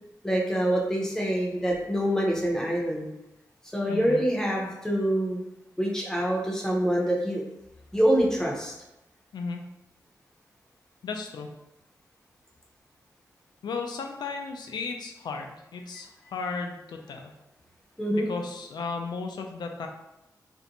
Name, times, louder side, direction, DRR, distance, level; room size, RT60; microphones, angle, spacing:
voice 1, 0.2-3.1 3.7-5.4 5.8-7.4 7.9-8.7 18.0-18.3, equal, 10° left, -2 dB, 0.6 m, -25 dB
voice 2, 3.9-4.2 9.3-9.6 11.0-11.5 13.6-17.3 18.1-19.9, left 4 dB, 90° left, 3 dB, 0.4 m, -35 dB
2.5 x 2.1 x 2.8 m, 0.93 s
wide cardioid pair, 115°, 7 cm